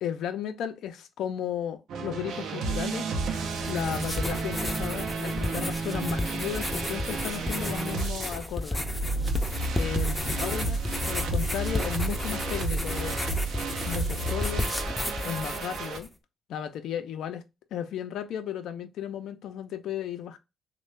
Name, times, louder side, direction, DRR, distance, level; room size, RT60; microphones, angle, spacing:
voice 1, 0.0-3.2 3.7-8.9 9.7-10.8 11.1-13.3 13.9-14.7 15.2-16.1 16.5-17.4 17.7-20.4, left 9 dB, 80° left, 0.4 m, -34 dB
sound 1, 1.9-8.3 8.7-16.0, right 3 dB, 80° right, 0.5 m, -32 dB
sound 2, 3.4-16.1, left 1 dB, 15° left, 0.5 m, -33 dB
3.1 x 2.2 x 3.2 m
cardioid pair, 90°, 0 cm